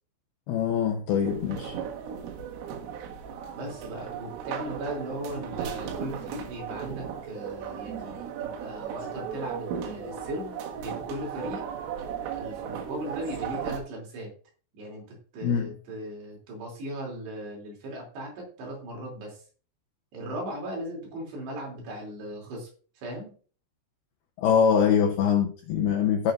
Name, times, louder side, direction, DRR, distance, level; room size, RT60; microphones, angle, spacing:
voice 1, 0.5-1.8 15.4-15.7 24.4-26.3, left 7 dB, 80° left, 2.3 m, -23 dB
sound 1, 1.2-13.8, right 8 dB, 90° right, 4.1 m, -36 dB
voice 2, 3.5-11.6 12.3-14.3 14.7-19.4 20.1-22.7 23.0-23.3, right 1 dB, 60° right, 5.1 m, -38 dB
Male speech man speaking, 8.0-8.3 9.0-9.3 9.9-10.3 11.4-11.7 13.0-13.8, equal, 30° right, 4.4 m, -49 dB
17.0 x 7.3 x 2.6 m
omnidirectional pair, 5.6 m